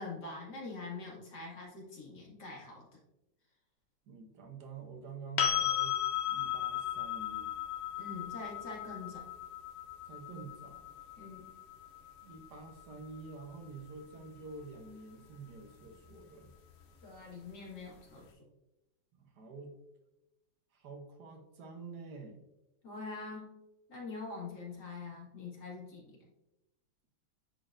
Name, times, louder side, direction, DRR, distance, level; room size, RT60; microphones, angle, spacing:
voice 1, 0.0-2.9 8.0-9.2 11.2-11.5 17.0-18.3 22.8-23.6 23.9-26.2, left 3 dB, 65° left, -3 dB, 2.3 m, -44 dB
voice 2, 4.1-6.0 6.3-7.5 10.0-10.8 12.2-16.5 19.1-19.8 20.7-22.4, right 4 dB, 70° right, 4 dB, 1.4 m, -48 dB
sound 1, 5.4-13.2 16.0-16.1, left 10 dB, 85° left, 0.5 m, -36 dB
9.8 x 4.0 x 2.5 m, 0.94 s
omnidirectional pair, 2.0 m